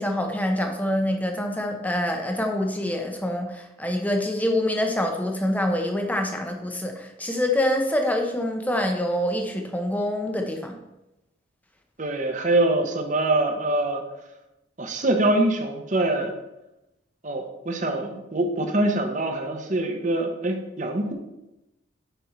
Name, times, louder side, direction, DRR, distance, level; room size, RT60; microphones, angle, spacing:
voice 1, 0.0-10.8, left 1 dB, 10° left, 3 dB, 0.8 m, -26 dB
voice 2, 12.0-14.0 14.8-16.3 17.2-21.1, right 2 dB, 35° right, 4 dB, 1.0 m, -24 dB
8.0 x 5.4 x 4.5 m, 0.94 s
head